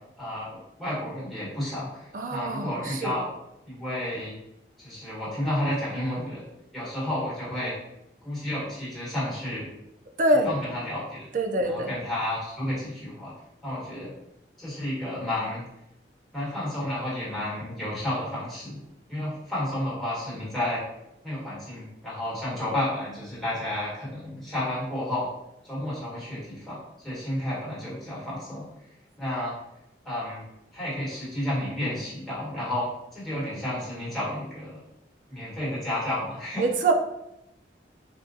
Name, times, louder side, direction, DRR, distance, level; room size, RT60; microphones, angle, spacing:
voice 1, 0.2-0.5 0.8-3.3 3.7-4.4 4.8-6.4 6.7-7.7 8.2-9.7 10.4-11.3 11.6-13.3 13.6-14.1 14.6-15.6 16.3-18.8 19.1-20.8 21.2-25.3 25.6-28.6 29.2-29.5 30.0-30.4 30.7-34.8 35.3-36.6, left 1 dB, ahead, -10 dB, 1.3 m, -31 dB
voice 2, 2.1-3.2 10.2-10.6 11.3-11.9 36.6-36.9, right 2 dB, 45° right, 4 dB, 0.4 m, -25 dB
3.6 x 2.3 x 2.7 m, 0.85 s
head